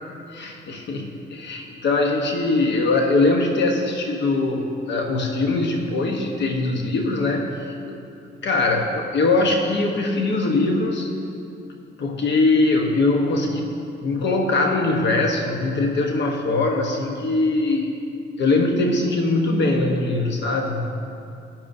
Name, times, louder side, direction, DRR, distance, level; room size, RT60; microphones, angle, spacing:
voice 1, 0.1-8.0 8.4-11.1 12.0-18.0 18.4-20.9, left 2 dB, 65° left, 2 dB, 1.0 m, -22 dB
13.5 x 10.0 x 2.6 m, 2.5 s
cardioid pair, 90°, 20 cm